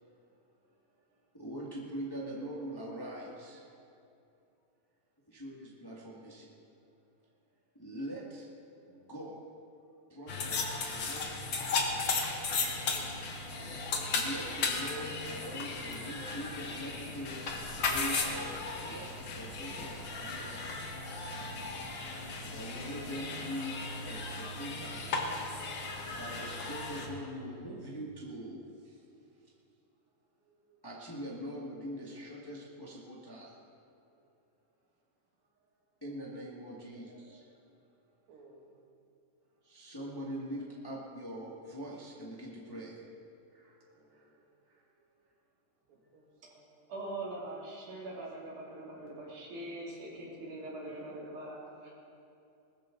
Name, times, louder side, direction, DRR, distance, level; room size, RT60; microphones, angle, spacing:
voice 1, 1.3-3.7 5.3-6.5 7.7-8.5 8.9-9.4 10.1-12.6 13.9-20.6 22.5-25.2 26.2-29.0 30.7-33.6 36.0-37.5 39.6-43.1 43.5-44.3 44.7-44.8, equal, 30° left, -4 dB, 0.4 m, -43 dB
sound 1, 10.3-27.1, left 3 dB, 60° left, 1.2 m, -36 dB
voice 2, 38.3-38.7 44.0-44.4 45.9-46.9 47.4-47.5 47.8-48.2 48.8-49.0 50.8-51.9, right 2 dB, 80° right, -1 dB, 3.8 m, -60 dB
voice 3, 46.9-51.9, right 2 dB, 60° right, -5 dB, 4.3 m, -42 dB
20.5 x 13.5 x 3.9 m, 2.6 s
omnidirectional pair, 4.0 m